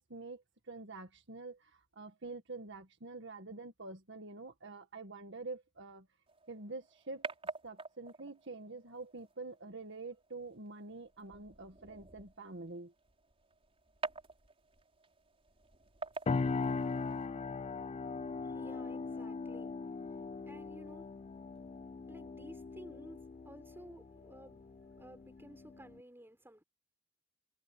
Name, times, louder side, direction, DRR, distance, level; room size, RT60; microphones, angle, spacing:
voice 1, 0.0-6.1 6.5-7.3 7.6-12.9 20.3-20.4, right 3 dB, 65° right, 1.9 m, -47 dB
sound 1, 6.3-17.3, right 3 dB, 30° right, 5.4 m, -48 dB
sound 2, 16.3-26.0, left 4 dB, 30° left, 0.3 m, -39 dB
voice 2, 18.4-26.6, right 1 dB, 10° right, 6.1 m, -55 dB
head